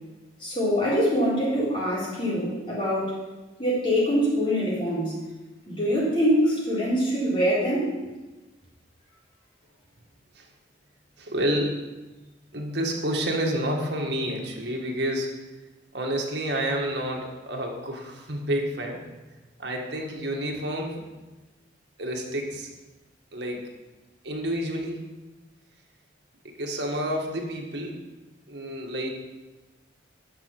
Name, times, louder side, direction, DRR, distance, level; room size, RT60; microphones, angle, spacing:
voice 1, 0.4-3.1 3.6-5.1 5.7-7.9, equal, 30° left, -7 dB, 4.1 m, -24 dB
voice 2, 11.2-11.8 12.5-15.4 15.9-19.0 19.6-21.1 22.0-22.7 23.3-23.7 24.2-25.0 26.4-28.0 28.5-29.1, equal, 60° right, 0 dB, 1.9 m, -29 dB
11.0 x 6.2 x 6.1 m, 1.1 s
head